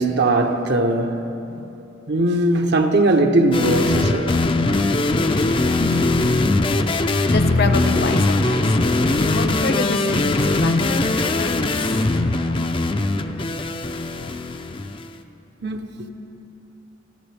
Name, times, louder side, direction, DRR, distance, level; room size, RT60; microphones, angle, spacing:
voice 1, 0.0-1.7 2.1-4.4 15.6-15.9, right 2 dB, 55° right, 0.9 m, -19 dB
sound 1, 3.5-15.0, left 2 dB, 25° left, 0.5 m, -20 dB
voice 2, 4.9-6.4 6.6-11.8 12.1-12.6, left 2 dB, 55° left, 0.9 m, -28 dB
25.0 x 14.0 x 3.4 m
head